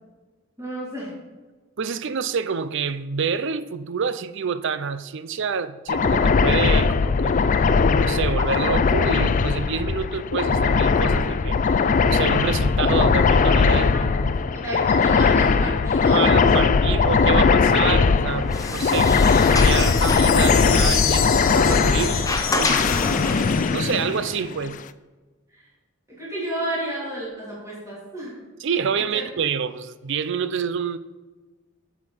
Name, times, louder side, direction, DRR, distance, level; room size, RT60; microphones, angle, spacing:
voice 1, 0.6-1.1 14.5-16.5 16.9-17.0 18.0-18.1 22.7-23.3 25.5-25.7 26.1-28.4 29.1-29.2, right 1 dB, 15° right, 3.1 m, -32 dB
voice 2, 1.8-7.4 8.0-11.6 12.0-14.3 16.0-22.3 22.5-22.8 23.7-24.8 28.6-31.0, right 6 dB, 60° right, 0.5 m, -27 dB
sound 1, 5.9-24.7, left 5 dB, 40° left, 0.4 m, -19 dB
Sliding door, 18.2-23.7, left 3 dB, 15° left, 0.7 m, -30 dB
sound 2, 19.2-23.9, left 9 dB, 80° left, 1.2 m, -28 dB
8.0 x 7.4 x 5.0 m
head